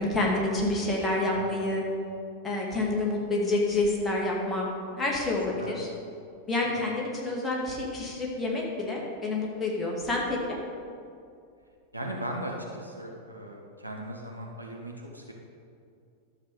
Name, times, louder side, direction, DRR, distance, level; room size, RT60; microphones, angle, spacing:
voice 1, 0.0-1.8 2.4-4.7 5.0-5.9 6.5-10.6, left 2 dB, 15° left, -3 dB, 2.2 m, -28 dB
voice 2, 11.9-15.3, right 1 dB, 90° right, -1 dB, 1.3 m, -38 dB
11.5 x 7.0 x 4.9 m, 2.4 s
figure-of-eight pair, 90°, 0 cm